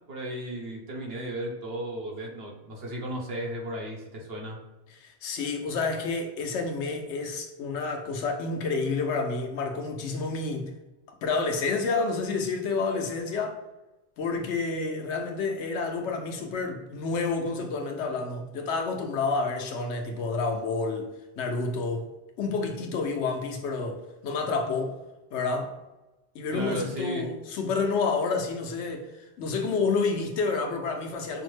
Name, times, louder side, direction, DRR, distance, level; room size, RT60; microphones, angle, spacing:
voice 1, 0.1-4.6 26.5-27.3, right 1 dB, 65° right, 1.1 m, -35 dB
voice 2, 5.0-10.7 11.2-13.6 14.2-21.1 21.4-22.1 22.4-25.0 25.3-25.7 26.3-29.1 29.4-31.4, left 4 dB, 85° left, 1.0 m, -29 dB
5.3 x 2.0 x 3.2 m
omnidirectional pair, 1.1 m